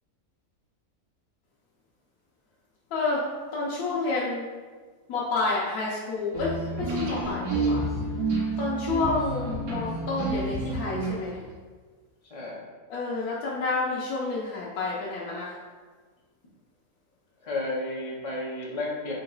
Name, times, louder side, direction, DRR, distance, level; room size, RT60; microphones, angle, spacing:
voice 1, 2.9-4.5 5.1-7.9 8.6-11.4 12.9-15.6, left 3 dB, 85° left, -5 dB, 1.2 m, -29 dB
sound 1, 6.3-11.5, right 2 dB, 85° right, 1.4 m, -29 dB
voice 2, 17.5-19.1, left 2 dB, 30° left, -4 dB, 0.7 m, -32 dB
3.8 x 2.9 x 3.9 m, 1.4 s
omnidirectional pair, 1.5 m